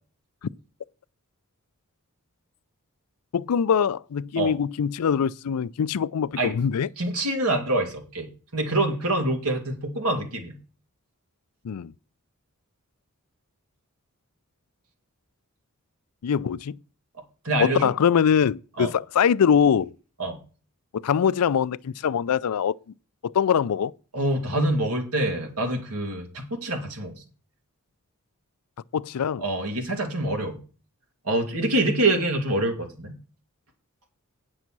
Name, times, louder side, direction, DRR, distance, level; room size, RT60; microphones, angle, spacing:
voice 1, 3.3-6.9 11.6-11.9 16.2-16.8 17.6-19.9 21.0-22.7 23.2-23.9 28.9-29.4, left 7 dB, 90° left, 0.4 m, -23 dB
voice 2, 7.0-10.6 17.4-17.9 18.8-18.9 20.2-20.4 24.1-27.2 29.4-30.6 31.2-33.1, right 2 dB, 85° right, 2.6 m, -26 dB
9.5 x 6.2 x 6.0 m
head